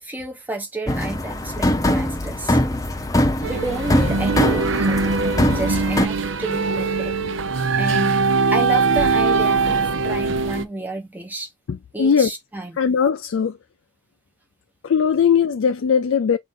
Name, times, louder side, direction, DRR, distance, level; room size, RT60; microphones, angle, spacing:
voice 1, 0.0-2.6 3.4-5.2 5.5-7.1 7.8-8.1 8.5-11.5 11.9-12.8, right 2 dB, 10° right, 1.0 m, -30 dB
sound 1, 0.9-6.1, left 1 dB, 15° left, 0.6 m, -22 dB
sound 2, 3.4-10.6, right 4 dB, 80° right, 0.7 m, -21 dB
voice 2, 11.7-12.3 12.8-13.6 14.8-16.4, left 7 dB, 85° left, 0.4 m, -19 dB
4.8 x 2.6 x 3.7 m
head